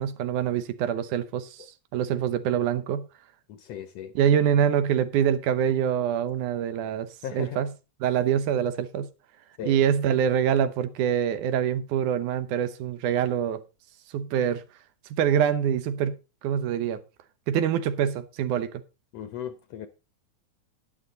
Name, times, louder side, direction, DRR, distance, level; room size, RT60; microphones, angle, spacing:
voice 1, 0.0-1.7 1.9-3.1 4.2-7.7 8.0-9.1 9.6-13.6 14.1-14.6 15.2-16.2 16.4-17.0 17.5-18.7, right 9 dB, 80° right, 2.3 m, -25 dB
voice 2, 3.6-4.1 7.2-7.6 9.6-9.7 19.1-19.9, left 9 dB, 75° left, 1.6 m, -36 dB
11.5 x 9.9 x 3.9 m
omnidirectional pair, 3.6 m